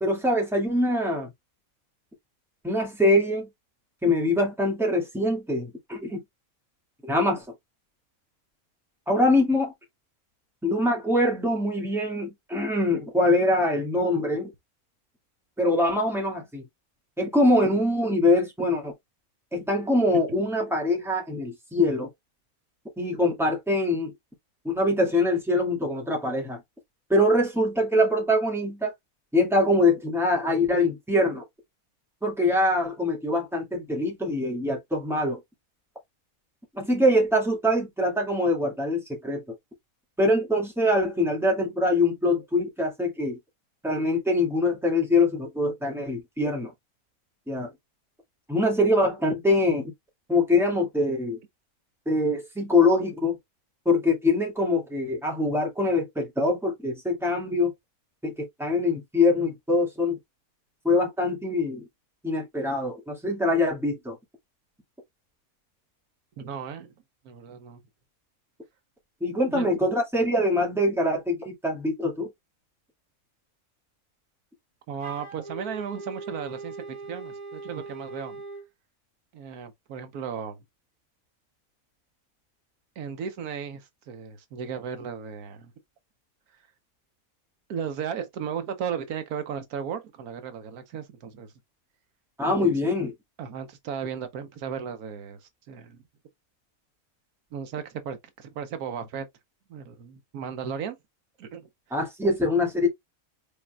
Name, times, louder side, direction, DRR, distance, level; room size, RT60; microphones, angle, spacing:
voice 1, 0.0-1.3 2.6-3.5 4.0-6.2 7.0-7.4 9.1-9.7 10.6-14.5 15.6-16.6 17.2-18.9 19.5-22.1 23.0-24.1 24.6-26.6 27.1-28.9 29.3-31.4 32.2-35.4 36.7-39.4 40.2-43.4 43.8-46.7 47.5-47.7 48.5-49.9 50.3-51.4 52.1-53.4 53.9-57.7 58.2-60.2 60.8-61.8 62.2-64.2 69.2-72.3 92.4-93.1 101.9-102.9, left 1 dB, ahead, 1.9 m, -24 dB
voice 2, 66.4-66.9 67.2-67.8 69.5-69.7 74.9-78.4 79.3-80.6 83.0-85.7 87.7-91.5 92.6-92.7 93.4-95.4 95.7-96.0 97.5-99.3 99.7-101.0 101.4-101.7, right 7 dB, 85° right, 1.3 m, -35 dB
Wind instrument woodwind instrument, 75.0-78.7, right 3 dB, 20° right, 1.6 m, -40 dB
5.1 x 4.3 x 2.3 m
omnidirectional pair, 1.5 m